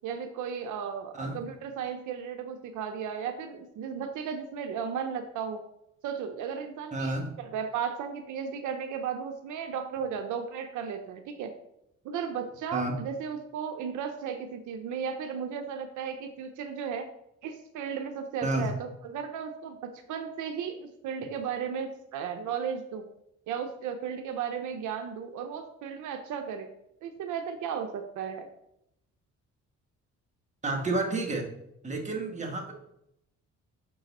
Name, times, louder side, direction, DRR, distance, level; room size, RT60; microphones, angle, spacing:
voice 1, 0.0-5.6 6.0-11.5 12.0-17.1 17.4-23.1 23.5-26.7 27.0-28.5, right 7 dB, 80° right, 7 dB, 0.6 m, -35 dB
voice 2, 6.9-7.3 12.7-13.0 18.4-18.7 30.6-31.5 31.8-32.7, right 2 dB, 25° right, 1 dB, 1.3 m, -30 dB
5.9 x 3.8 x 4.1 m, 0.80 s
cardioid pair, 90°, 30 cm